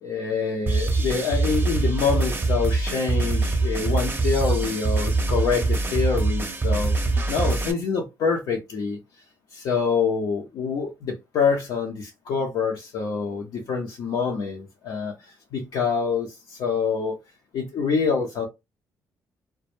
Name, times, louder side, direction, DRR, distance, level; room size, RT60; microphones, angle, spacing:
voice 1, 0.0-6.9 7.3-9.0 9.5-17.2 17.5-18.5, left 5 dB, 75° left, 0.6 m, -26 dB
sound 1, 0.7-7.7, right 3 dB, 25° right, 0.6 m, -24 dB
2.1 x 2.0 x 3.0 m
supercardioid pair, 65°, 8 cm